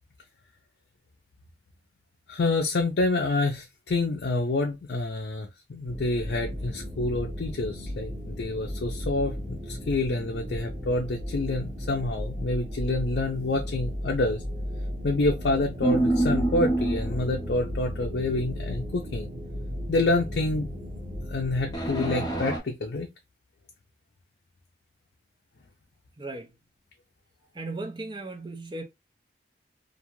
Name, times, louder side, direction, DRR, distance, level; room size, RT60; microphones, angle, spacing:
voice 1, 2.3-14.4 15.0-19.3 19.9-20.8 21.3-23.1, left 2 dB, 70° left, 0.5 m, -28 dB
sound 1, 5.9-21.8, equal, 45° right, 1.4 m, -35 dB
sound 2, 15.8-17.6 21.7-22.6, right 1 dB, 20° left, 0.8 m, -26 dB
voice 2, 26.2-26.5 27.5-28.8, right 2 dB, 25° right, 0.5 m, -36 dB
2.5 x 2.4 x 3.0 m
head